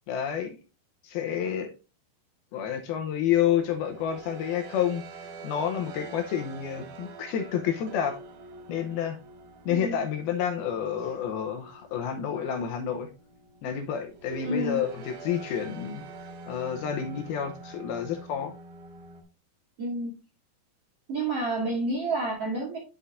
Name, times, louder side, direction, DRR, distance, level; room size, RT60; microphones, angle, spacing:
voice 1, 0.1-0.6 1.0-1.7 2.5-8.2 8.7-9.2 9.7-13.1 13.6-16.0 16.5-18.5, left 9 dB, 75° left, 6 dB, 2.5 m, -29 dB
sound 1, 2.9-19.2, right 3 dB, 70° right, 2.9 m, -46 dB
voice 2, 9.6-10.0 14.4-14.8 19.8-20.1 21.1-22.8, right 2 dB, 45° right, -4 dB, 2.4 m, -29 dB
11.0 x 5.6 x 2.5 m, 0.30 s
omnidirectional pair, 4.8 m